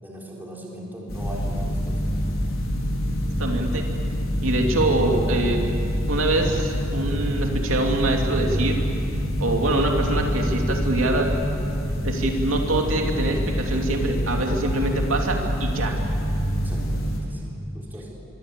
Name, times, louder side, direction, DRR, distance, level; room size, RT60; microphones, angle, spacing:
voice 1, 0.0-2.0 16.5-18.1, equal, 10° right, -4 dB, 4.1 m, -39 dB
sound 1, 1.1-17.2, equal, 80° left, 5.2 m, -26 dB
voice 2, 3.4-3.8 4.4-5.6 6.1-8.8 9.4-11.3 12.0-16.0, right 2 dB, 75° right, 1 dB, 2.8 m, -24 dB
25.5 x 23.5 x 8.3 m, 2.6 s
head